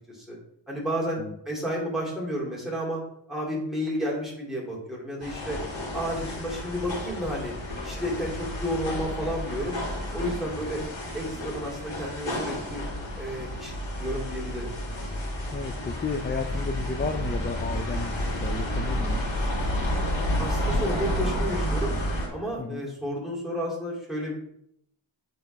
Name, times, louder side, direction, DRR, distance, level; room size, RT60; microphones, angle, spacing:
voice 1, 0.7-1.2 1.5-3.0 3.3-5.6 5.9-7.5 7.8-9.8 10.1-10.8 11.1-12.8 13.2-13.7 14.0-14.7 20.4-21.9 22.3-24.4, equal, ahead, -4 dB, 2.7 m, -31 dB
sound 1, 5.2-22.3, equal, 70° left, 2.3 m, -30 dB
voice 2, 15.5-19.2 22.6-22.9, left 4 dB, 25° left, 6 dB, 0.4 m, -33 dB
9.4 x 3.5 x 3.3 m, 0.74 s
wide cardioid pair, 65°, 47 cm